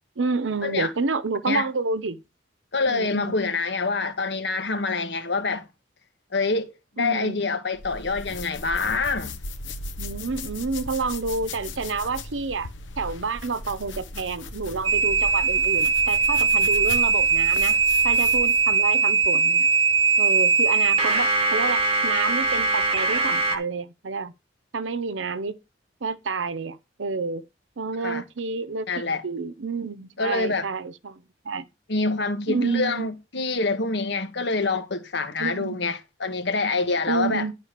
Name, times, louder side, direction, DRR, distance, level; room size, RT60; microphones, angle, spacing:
voice 1, 0.2-2.2 2.8-3.4 7.0-7.4 10.0-12.7 13.0-17.8 18.0-19.7 20.2-24.3 24.7-25.5 26.0-27.4 27.8-31.7 32.5-33.1 35.4-35.8 37.1-37.5, right 4 dB, 85° right, 0.8 m, -29 dB
voice 2, 2.7-5.6 6.3-9.3 28.0-28.2 28.9-29.2 30.2-30.7 31.9-37.5, left 3 dB, 65° left, 1.3 m, -26 dB
sound 1, 7.7-18.7, left 2 dB, 85° left, 1.0 m, -37 dB
sound 2, 14.8-23.6, right 4 dB, 30° right, 1.4 m, -21 dB
10.0 x 4.0 x 6.6 m
head